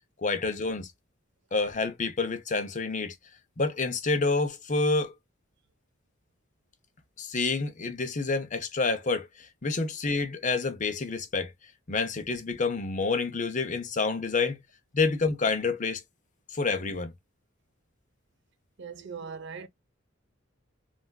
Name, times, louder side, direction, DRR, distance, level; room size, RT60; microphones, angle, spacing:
voice 1, 0.2-0.9 1.5-3.1 3.6-5.1 7.2-11.5 11.9-14.6 14.9-16.0 16.5-17.1, left 3 dB, 40° left, 0.7 m, -28 dB
voice 2, 18.8-19.7, right 6 dB, 65° right, 0.6 m, -40 dB
3.3 x 2.5 x 2.2 m
head